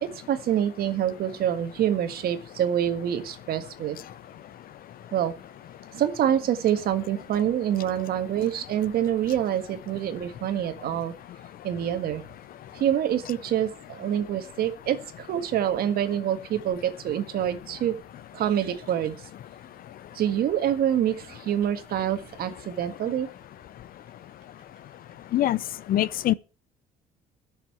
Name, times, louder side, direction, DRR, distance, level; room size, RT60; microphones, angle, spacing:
voice 1, 0.0-4.0 5.1-5.4 5.9-11.1 11.6-12.2 12.7-17.9 18.3-19.1 20.1-23.3, right 10 dB, 65° right, 1.6 m, -26 dB
voice 2, 25.9-26.3, left 13 dB, 60° left, 0.7 m, -22 dB
10.5 x 6.7 x 8.5 m
cardioid pair, 110°, 17 cm